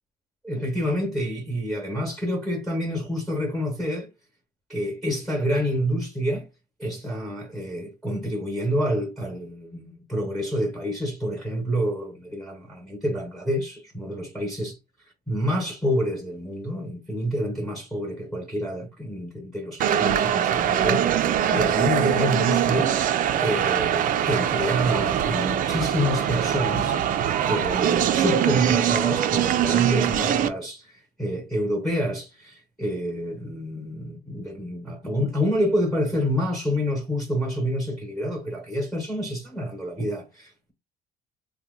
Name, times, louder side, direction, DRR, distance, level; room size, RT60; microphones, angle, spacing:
voice 1, 0.4-4.1 4.7-6.5 6.8-14.7 15.3-23.0 23.4-27.0 27.5-40.7, equal, ahead, 0.9 m, -28 dB
sound 1, 19.8-30.5, right 10 dB, 55° right, 0.4 m, -23 dB
2.8 x 2.2 x 3.6 m
cardioid pair, 110°, 17 cm